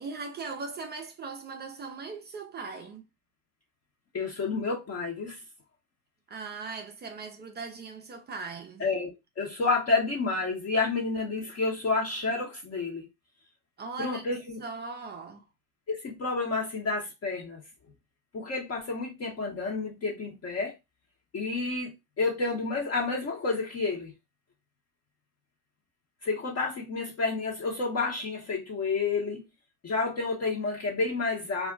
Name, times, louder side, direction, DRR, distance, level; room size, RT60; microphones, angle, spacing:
voice 1, 0.0-3.1 6.3-8.9 13.8-14.2 14.6-15.4, right 4 dB, 20° right, 0.4 m, -39 dB
voice 2, 4.1-5.4 8.8-13.1 14.0-14.6 15.9-17.6 18.3-20.7 21.3-24.1 26.2-29.4 29.8-31.7, left 3 dB, 30° left, 0.8 m, -30 dB
2.3 x 2.1 x 3.6 m
hypercardioid pair, 90°, 50 cm